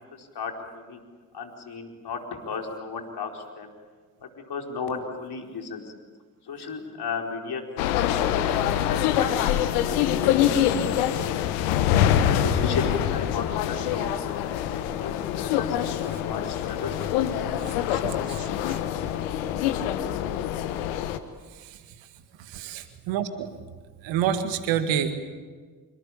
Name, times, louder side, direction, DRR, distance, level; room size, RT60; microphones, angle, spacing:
voice 1, 0.2-1.0 1.3-3.7 4.2-5.9 6.4-9.3 9.8-11.3 11.9-14.1 14.7-18.0, left 5 dB, 55° left, 3 dB, 4.7 m, -35 dB
sound 1, 7.8-21.2, left 10 dB, 80° left, 1.4 m, -25 dB
voice 2, 18.0-18.4 22.5-23.5 24.0-25.1, right 9 dB, 75° right, 9 dB, 2.0 m, -27 dB
26.0 x 24.5 x 8.6 m, 1.5 s
hypercardioid pair, 40°, 46 cm